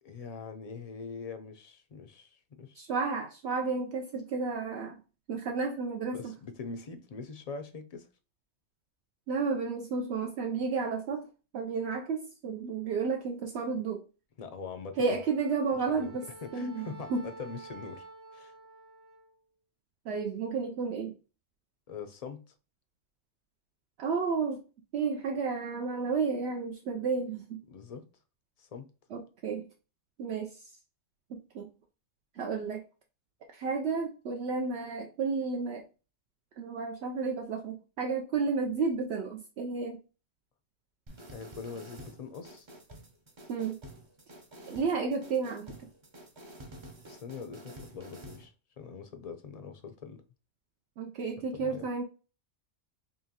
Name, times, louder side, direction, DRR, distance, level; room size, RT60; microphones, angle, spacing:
voice 1, 0.0-2.8 6.1-8.1 14.4-15.2 15.9-18.1 18.3-18.5 21.9-22.4 27.7-28.1 28.6-28.9 41.3-42.7 47.1-50.2 51.5-51.9, left 5 dB, 50° left, 0.5 m, -43 dB
voice 2, 2.8-5.0 5.3-6.2 9.3-11.3 11.5-14.0 15.0-16.3 16.5-17.3 20.1-21.1 24.0-24.6 24.9-27.6 29.1-29.7 30.2-30.5 31.5-31.7 32.4-32.8 33.5-35.8 36.6-40.0 43.5-43.8 44.7-45.7 51.0-52.0, right 4 dB, 70° right, 0.8 m, -32 dB
Wind instrument woodwind instrument, 14.9-19.3, right 3 dB, 50° right, 1.9 m, -50 dB
sound 1, 41.1-48.5, right 1 dB, 35° right, 0.5 m, -49 dB
5.4 x 2.2 x 2.8 m
omnidirectional pair, 1.2 m